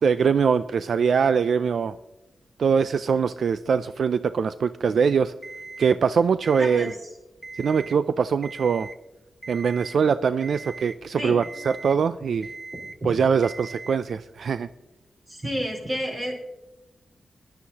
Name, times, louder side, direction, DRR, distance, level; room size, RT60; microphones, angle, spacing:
voice 1, 0.0-2.0 2.6-5.3 5.8-6.9 7.6-8.9 9.5-12.5 13.0-14.7, right 6 dB, 75° right, 13 dB, 0.3 m, -22 dB
Alarm, 5.4-6.0 6.4-7.0 7.4-8.0 8.4-9.0 9.4-10.0 10.4-11.0 11.4-12.0 12.4-13.0 13.4-14.0, right 3 dB, 10° right, 0.6 m, -40 dB
voice 2, 6.6-6.9 11.2-11.4 13.0-13.1 15.3-16.3, equal, 35° right, -1 dB, 4.0 m, -30 dB
18.5 x 11.0 x 2.8 m, 1.0 s
wide cardioid pair, 95°, 0 cm